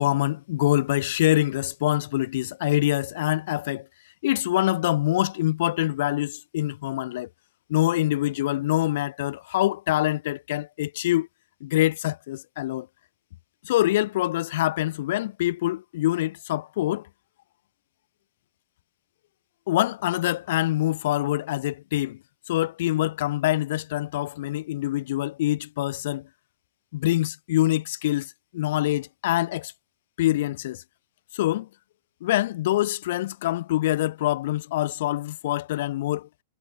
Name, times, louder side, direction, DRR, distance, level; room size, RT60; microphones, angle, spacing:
voice 1, 0.0-3.9 4.2-7.3 7.7-11.3 11.6-12.9 13.6-17.1 19.7-22.2 22.5-26.3 26.9-29.7 30.2-30.8 31.3-31.7 32.2-36.3, left 15 dB, 60° left, 2.0 m, -25 dB
hypercardioid pair, 110°, 0 cm